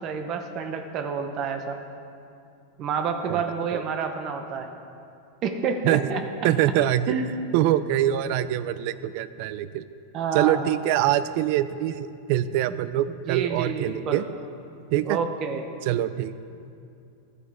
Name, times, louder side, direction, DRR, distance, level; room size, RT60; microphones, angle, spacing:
voice 1, 0.0-1.8 2.8-4.7 5.4-6.2 7.1-7.3 10.1-10.7 13.3-14.2 15.0-15.6, right 6 dB, 35° right, 6 dB, 0.8 m, -28 dB
voice 2, 6.4-7.1 7.5-9.9 10.3-14.2 14.9-15.2 15.8-16.3, right 12 dB, 50° right, 15 dB, 0.4 m, -24 dB
12.0 x 7.9 x 4.8 m, 2.5 s
supercardioid pair, 155°, 0 cm